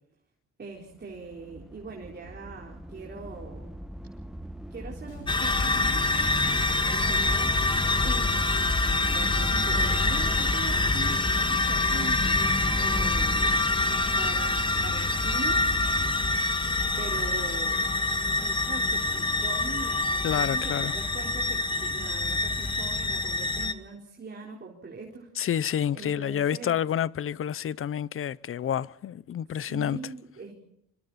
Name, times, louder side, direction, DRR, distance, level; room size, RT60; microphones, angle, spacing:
voice 1, 0.6-3.7 4.7-8.7 9.1-12.4 12.8-13.6 14.2-15.7 17.0-25.3 25.9-26.8 29.5-30.5, right 4 dB, 35° right, 4.3 m, -42 dB
sound 1, 0.9-11.3, right 1 dB, ahead, 1.2 m, -40 dB
sound 2, 5.1-17.3, left 5 dB, 80° left, 5.3 m, -45 dB
sound 3, 5.3-23.7, left 2 dB, 15° left, 1.8 m, -26 dB
voice 2, 20.2-20.9 25.4-30.0, left 9 dB, 45° left, 0.7 m, -29 dB
25.5 x 25.5 x 4.2 m
cardioid pair, 90°, 30 cm